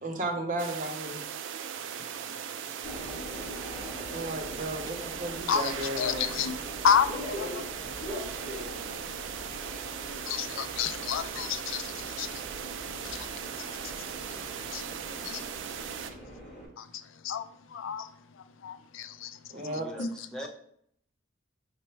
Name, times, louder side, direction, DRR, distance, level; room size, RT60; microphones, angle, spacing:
voice 1, 0.0-1.2 4.1-6.4 9.5-9.9 19.5-19.9, right 1 dB, 40° right, 0.7 m, -35 dB
sound 1, 0.6-16.1, right 8 dB, 65° right, 0.3 m, -38 dB
Subway metro underground, 2.8-16.7, equal, 35° left, 1.3 m, -42 dB
voice 2, 5.5-6.5 6.8-7.6 8.1-8.2 8.9-9.0 10.3-12.4 13.0-13.3 13.6-13.7 14.7-14.8 15.2-15.5 16.8-18.1 18.6-19.4 20.0-20.1, left 7 dB, 75° left, 0.3 m, -30 dB
voice 3, 14.9-15.4 19.6-20.5, equal, 5° left, 0.5 m, -43 dB
5.5 x 2.1 x 4.4 m
head